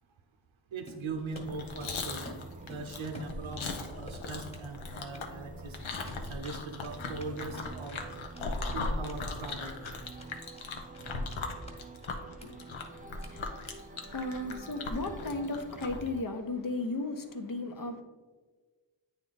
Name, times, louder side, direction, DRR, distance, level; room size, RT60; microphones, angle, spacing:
voice 1, 0.7-2.2 2.6-5.8 6.2-8.0 8.7-9.7, right 3 dB, 85° right, 0.8 m, -40 dB
Run, 0.9-2.0 2.2-3.7 4.1-4.7 5.0-5.2 6.0-9.5 9.8-9.9 10.2-10.7 10.9-11.8 12.0-12.1 12.4-12.5 12.8-12.9 13.2-13.3 13.6-13.9, equal, 15° left, 1.3 m, -50 dB
Chewing mastication, 1.3-16.1, left 3 dB, 90° left, 0.9 m, -39 dB
sound 1, 1.4-16.2, right 4 dB, 20° right, 0.3 m, -48 dB
voice 2, 12.1-18.0, left 2 dB, 45° left, 0.9 m, -36 dB
8.8 x 3.6 x 3.9 m
wide cardioid pair, 60°, 46 cm